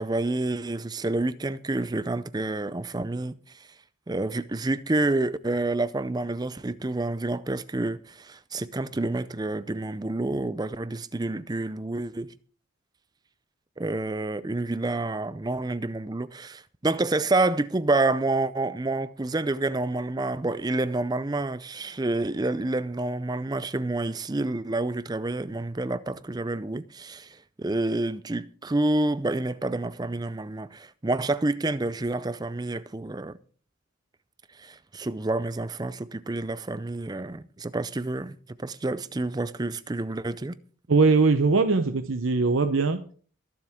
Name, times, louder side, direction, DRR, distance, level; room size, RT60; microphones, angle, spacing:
voice 1, 0.0-3.7 4.1-12.3 13.8-33.4 34.6-40.5, right 2 dB, 20° right, 0.5 m, -28 dB
voice 2, 40.9-43.0, right 4 dB, 70° right, 0.8 m, -21 dB
22.0 x 7.5 x 3.6 m
head